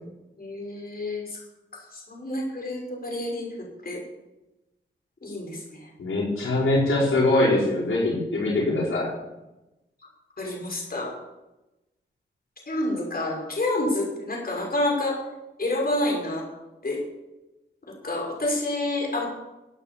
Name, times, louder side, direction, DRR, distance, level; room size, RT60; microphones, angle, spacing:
voice 1, 0.4-1.4 1.9-4.0 5.2-5.9 10.4-11.1 12.7-15.2 15.6-16.5 16.8-17.0 17.9-19.3, left 1 dB, 50° left, -1 dB, 6.0 m, -28 dB
voice 2, 6.0-9.1, left 2 dB, 85° left, -5 dB, 5.3 m, -22 dB
17.0 x 9.2 x 7.2 m, 0.98 s
wide cardioid pair, 70°, 21 cm